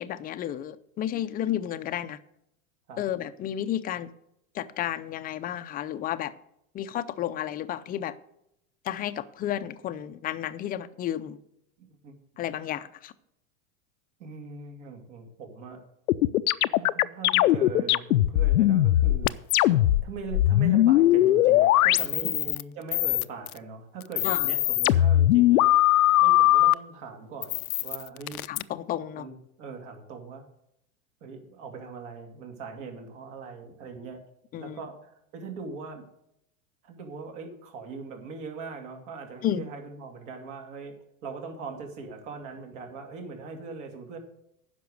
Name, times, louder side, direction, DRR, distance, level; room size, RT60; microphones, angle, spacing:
voice 1, 0.0-2.2 3.0-4.1 4.5-6.3 6.7-8.2 8.8-11.4 12.4-13.1 24.2-24.5 28.5-29.3 34.5-34.9 39.4-39.7, left 11 dB, 20° left, 0.4 m, -32 dB
voice 2, 11.8-12.1 14.2-15.8 16.8-19.3 20.0-25.6 26.2-28.4 29.2-30.4 31.2-34.2 34.6-36.0 36.8-41.0 41.2-44.2, right 4 dB, 60° right, 2.7 m, -41 dB
sound 1, 16.1-20.0 20.3-22.6 22.9-23.6 24.0-26.7 27.4-28.6, left 14 dB, 90° left, 0.6 m, -21 dB
10.0 x 6.0 x 7.9 m
supercardioid pair, 120°, 42 cm